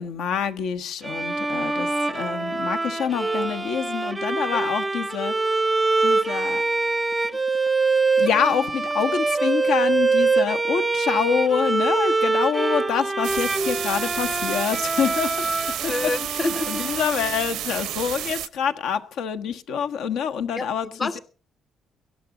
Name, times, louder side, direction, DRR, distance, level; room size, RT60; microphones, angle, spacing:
voice 1, 0.0-5.3 6.0-6.6 8.2-15.5 15.8-15.9 16.7-21.2, left 7 dB, 75° left, 9 dB, 1.3 m, -26 dB
Bowed string instrument, 1.0-17.6, right 3 dB, 10° right, 0.6 m, -24 dB
Wind instrument woodwind instrument, 1.6-5.3, left 6 dB, 50° left, 7.8 m, -49 dB
sound 1, 13.2-18.5, right 13 dB, 75° right, 0.6 m, -31 dB
voice 2, 15.9-16.8 20.6-21.2, left 2 dB, 25° left, 15 dB, 0.7 m, -28 dB
19.0 x 13.0 x 3.8 m, 0.36 s
cardioid pair, 160°, 0 cm